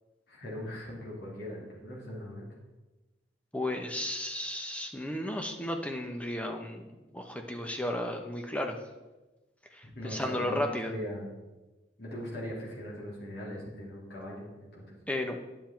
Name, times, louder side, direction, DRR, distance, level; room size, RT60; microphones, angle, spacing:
voice 1, 0.3-2.5 9.8-11.3 12.0-14.9, equal, 55° left, -4 dB, 3.1 m, -40 dB
voice 2, 3.5-8.8 9.7-10.9 15.1-15.4, left 1 dB, 5° left, 3 dB, 0.8 m, -34 dB
9.9 x 7.3 x 4.5 m, 1.1 s
head